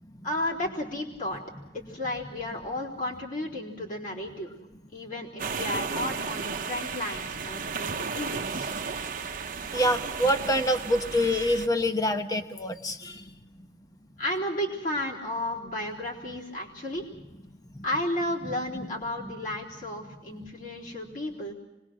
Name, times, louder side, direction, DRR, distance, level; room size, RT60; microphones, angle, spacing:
voice 1, 0.2-1.4 1.7-4.5 4.9-8.7 14.2-17.1 17.8-21.5, left 1 dB, 50° left, -4 dB, 3.8 m, -33 dB
sound 1, 5.4-11.7, right 5 dB, 50° right, 0.9 m, -34 dB
voice 2, 9.7-13.7 17.7-17.8 18.4-18.9 19.2-19.3, equal, 20° left, 7 dB, 1.0 m, -27 dB
25.5 x 20.5 x 6.3 m, 1.0 s
head